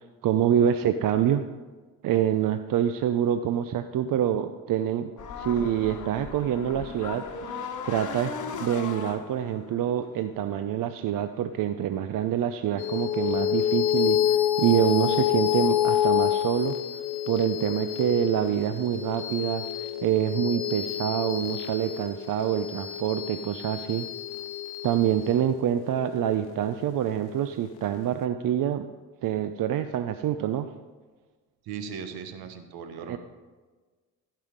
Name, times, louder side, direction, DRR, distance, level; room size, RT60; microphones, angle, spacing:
voice 1, 0.2-1.4 2.0-5.1 5.4-8.3 8.6-16.8 17.3-24.1 24.8-28.9 29.2-30.7 33.0-33.2, right 10 dB, 60° right, 10 dB, 0.6 m, -26 dB
sound 1, 5.2-10.7, left 5 dB, 50° left, 1.3 m, -37 dB
sound 2, 12.8-27.5, left 11 dB, 80° left, 0.8 m, -28 dB
voice 2, 31.6-33.2, right 6 dB, 75° right, 8 dB, 1.3 m, -38 dB
16.0 x 5.6 x 5.2 m, 1.4 s
supercardioid pair, 65°, 37 cm